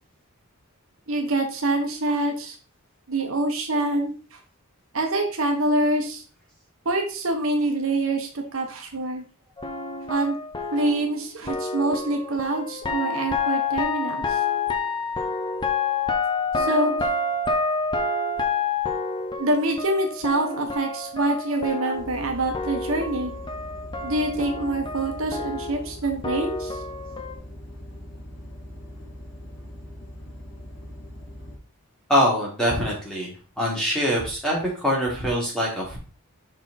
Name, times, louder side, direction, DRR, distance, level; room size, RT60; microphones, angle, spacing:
voice 1, 1.1-2.5 3.1-4.4 4.9-6.2 6.8-9.2 10.1-10.3 10.7-14.4 16.6-16.9 19.4-23.3 24.0-26.8, right 2 dB, 65° right, 3 dB, 1.1 m, -25 dB
sound 1, 9.6-22.3 22.5-27.4, left 4 dB, 20° left, 0.6 m, -28 dB
sound 2, 21.9-31.6, equal, 65° left, 2.8 m, -41 dB
voice 2, 32.1-33.3 33.6-36.0, equal, 5° left, -4 dB, 2.6 m, -23 dB
5.9 x 4.7 x 4.1 m, 0.36 s
head